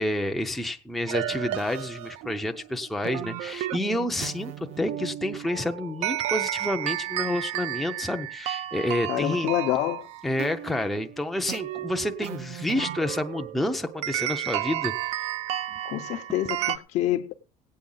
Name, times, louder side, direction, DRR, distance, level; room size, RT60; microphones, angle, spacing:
voice 1, 0.0-9.5 10.2-15.3 15.7-15.8 16.3-16.4, left 1 dB, ahead, 0.5 m, -29 dB
sound 1, 1.1-16.8, right 13 dB, 55° right, 0.5 m, -33 dB
voice 2, 9.1-10.1 15.8-17.3, left 13 dB, 60° left, 0.7 m, -27 dB
18.0 x 8.5 x 3.9 m
cardioid pair, 170°, 13 cm